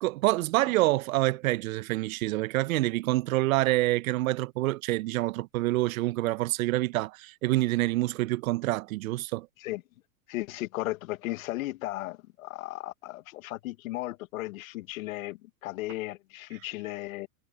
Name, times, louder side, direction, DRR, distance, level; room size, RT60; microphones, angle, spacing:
voice 1, 0.0-9.5, right 18 dB, 65° right, 0.8 m, -27 dB
voice 2, 10.3-17.3, left 18 dB, 65° left, 1.5 m, -35 dB
hypercardioid pair, 105°, 45 cm